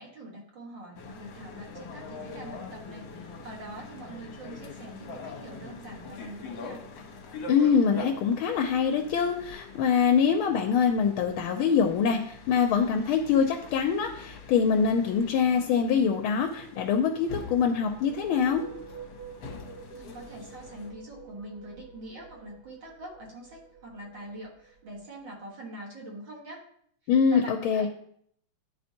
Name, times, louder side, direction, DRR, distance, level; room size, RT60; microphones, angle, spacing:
voice 1, 0.0-6.8 19.9-26.6 27.3-27.9, right 1 dB, 60° right, -2 dB, 2.2 m, -44 dB
sound 1, 1.0-20.9, left 3 dB, 65° left, 1.6 m, -44 dB
voice 2, 7.5-18.7 27.1-27.9, left 6 dB, 80° left, 4 dB, 1.4 m, -24 dB
sound 2, 17.8-25.3, right 5 dB, 80° right, 1.8 m, -49 dB
10.5 x 4.3 x 2.8 m, 0.65 s
omnidirectional pair, 2.3 m